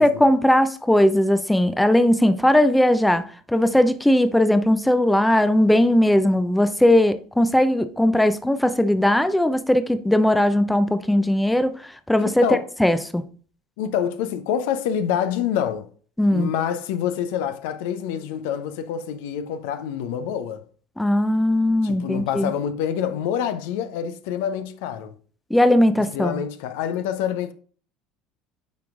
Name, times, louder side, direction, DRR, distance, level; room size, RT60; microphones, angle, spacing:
voice 1, 0.0-11.7 12.1-13.2 16.2-16.5 21.0-22.5 25.5-26.4, left 1 dB, 5° left, 0.6 m, -19 dB
voice 2, 13.8-15.9 16.3-20.6 21.8-25.1 26.1-27.5, left 9 dB, 65° left, 0.6 m, -26 dB
8.4 x 6.0 x 2.4 m
figure-of-eight pair, 65°, 0 cm